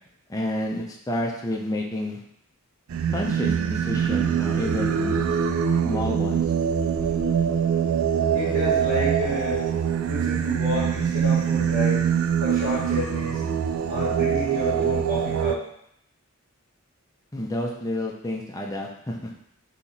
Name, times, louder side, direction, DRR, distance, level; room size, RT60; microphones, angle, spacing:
voice 1, 0.3-2.2 3.1-5.3 5.8-6.4 17.3-19.3, left 1 dB, 15° left, 0 dB, 0.5 m, -30 dB
Singing, 2.9-15.5, right 8 dB, 75° right, 0.3 m, -24 dB
voice 2, 8.3-9.6 10.0-12.1 12.4-13.4 13.9-15.6, left 1 dB, 40° right, -8 dB, 1.6 m, -30 dB
4.1 x 2.9 x 4.1 m, 0.72 s
head